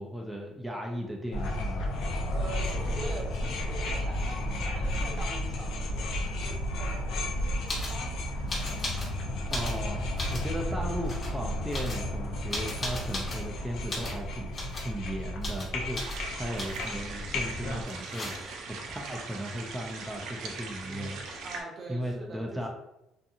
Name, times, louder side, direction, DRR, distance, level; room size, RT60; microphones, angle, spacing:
voice 1, 0.0-2.1 9.5-10.1 10.3-14.5 14.8-18.4 18.7-21.2 21.9-22.7, equal, 5° right, -1 dB, 0.4 m, -36 dB
sound 1, 1.3-17.8, left 1 dB, 75° left, 0.5 m, -33 dB
voice 2, 2.3-8.4 21.4-22.7, right 2 dB, 45° right, -1 dB, 0.7 m, -43 dB
sound 2, 7.7-8.0 8.5-9.1 9.4-10.5 11.0-11.3 11.7-13.5 13.9-14.2 14.5-14.9 15.4-15.7 15.9-16.2 16.6-16.9 17.9-18.6 20.4-20.5 20.7-21.3, left 2 dB, 35° left, 1.0 m, -37 dB
sound 3, 16.0-21.6, right 4 dB, 75° right, 0.5 m, -40 dB
2.6 x 2.5 x 2.5 m, 0.91 s
cardioid pair, 95°, 0 cm